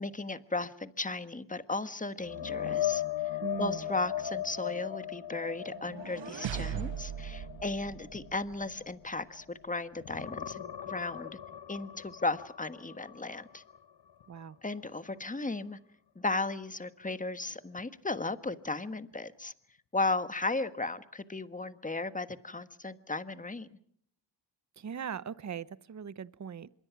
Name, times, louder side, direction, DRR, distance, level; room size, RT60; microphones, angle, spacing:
voice 1, 0.0-3.0 3.6-11.3 11.7-13.6 14.6-15.8 16.1-19.5 19.9-23.7, left 3 dB, 15° left, 12 dB, 1.4 m, -35 dB
sound 1, 2.2-9.6 10.0-13.8 14.2-14.4 17.8-17.9, left 11 dB, 55° left, 1.2 m, -38 dB
voice 2, 3.4-3.9 14.3-14.6 24.8-26.7, right 7 dB, 35° right, 18 dB, 0.8 m, -40 dB
sound 2, 5.6-8.7, right 11 dB, 70° right, 0.8 m, -39 dB
26.0 x 22.5 x 6.0 m, 0.66 s
cardioid pair, 65°, 48 cm